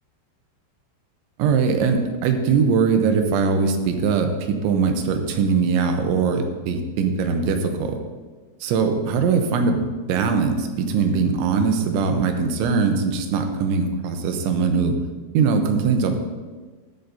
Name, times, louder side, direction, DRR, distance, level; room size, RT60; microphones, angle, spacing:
voice 1, 1.4-8.0 8.6-9.8 10.1-15.0 15.3-16.2, right 5 dB, 85° right, 6 dB, 3.3 m, -21 dB
14.0 x 11.5 x 2.8 m, 1.4 s
omnidirectional pair, 5.3 m